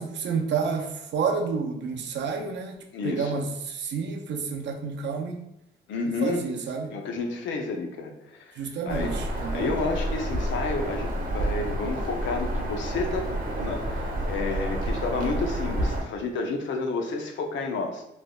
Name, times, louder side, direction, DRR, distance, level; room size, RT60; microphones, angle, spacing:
voice 1, 0.0-5.4 6.2-7.0 8.6-9.8, right 5 dB, 65° right, 3 dB, 0.5 m, -30 dB
voice 2, 2.9-3.4 5.9-6.5 6.9-8.5 8.9-9.1 9.5-18.0, left 3 dB, 70° left, 3 dB, 0.6 m, -30 dB
Bird vocalization bird call bird song, 8.9-16.0, right 1 dB, 45° right, 0.8 m, -29 dB
3.2 x 2.5 x 2.2 m, 0.83 s
cardioid pair, 90°, 20 cm